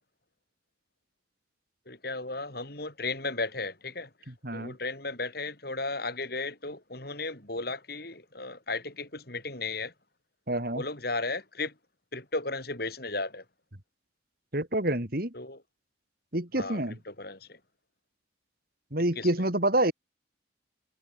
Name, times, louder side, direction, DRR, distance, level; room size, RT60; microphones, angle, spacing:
voice 1, 1.9-4.1 4.5-9.9 10.7-11.7 12.1-13.4 15.3-15.6 16.6-17.6 19.2-19.3, left 3 dB, 50° left, 5.7 m, -35 dB
voice 2, 4.4-4.8 10.5-10.8 14.5-15.3 16.3-17.0 18.9-19.9, right 1 dB, 50° right, 3.6 m, -27 dB
head